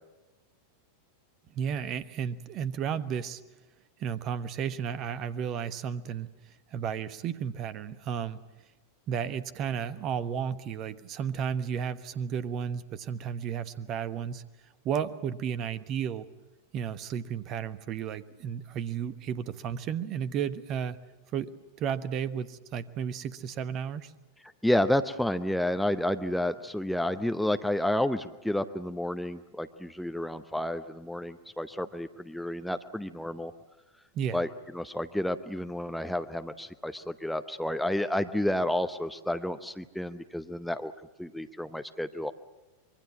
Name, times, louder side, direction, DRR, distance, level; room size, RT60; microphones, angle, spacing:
voice 1, 1.5-3.4 4.0-8.4 9.1-14.4 14.8-16.3 16.7-21.0 21.3-24.1 34.1-34.4, right 8 dB, 35° right, 14 dB, 1.2 m, -33 dB
voice 2, 24.6-33.5 34.3-34.5 34.7-40.9 41.2-42.3, left 1 dB, ahead, 9 dB, 0.9 m, -30 dB
25.5 x 22.5 x 7.4 m, 1.1 s
figure-of-eight pair, 90°, 0 cm